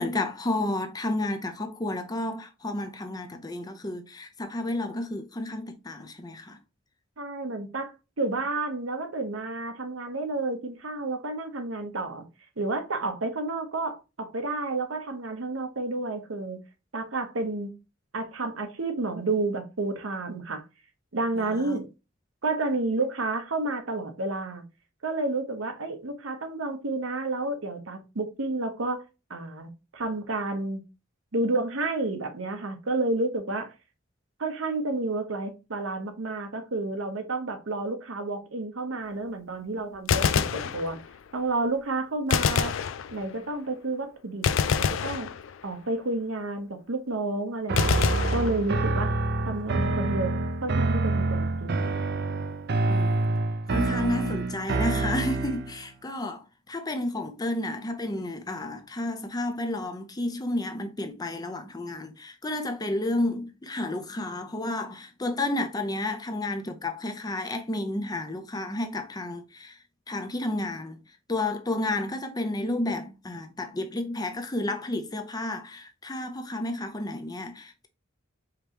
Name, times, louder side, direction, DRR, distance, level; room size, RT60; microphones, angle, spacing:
voice 1, 0.0-6.6 21.3-21.8 52.9-53.3 53.7-69.8 70.1-71.0 71.3-77.9, left 1 dB, 20° left, 0.6 m, -31 dB
voice 2, 7.2-12.2 12.6-16.6 16.9-17.7 18.1-20.6 21.1-21.8 22.4-24.6 25.0-29.0 29.3-30.8 31.3-33.7 34.4-41.0 41.3-42.7 43.1-45.3 45.6-49.1 49.4-51.9, right 2 dB, 80° right, 1.0 m, -30 dB
Gunshot gunfire, 40.0-41.3 42.3-43.5 44.4-45.9 47.8-49.1, left 7 dB, 70° left, 0.4 m, -27 dB
sound 1, 47.7-55.8, right 2 dB, 55° right, 0.6 m, -27 dB
5.0 x 3.1 x 2.8 m
head